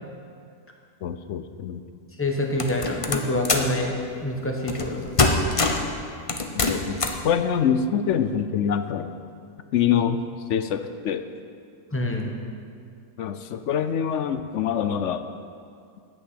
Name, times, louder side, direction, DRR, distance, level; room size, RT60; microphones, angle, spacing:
voice 1, 1.0-1.8 6.7-7.0 7.2-9.1 9.7-10.2 10.5-11.2 13.2-15.3, left 8 dB, 65° left, 10 dB, 0.8 m, -25 dB
voice 2, 2.2-3.9 4.2-5.1 11.9-12.3, left 1 dB, 10° left, 1 dB, 1.1 m, -26 dB
sound 1, 2.6-3.8 4.7-4.9 5.2-5.9 6.3-7.3, left 3 dB, 30° left, 0.7 m, -23 dB
10.5 x 8.6 x 7.6 m, 2.3 s
omnidirectional pair, 1.5 m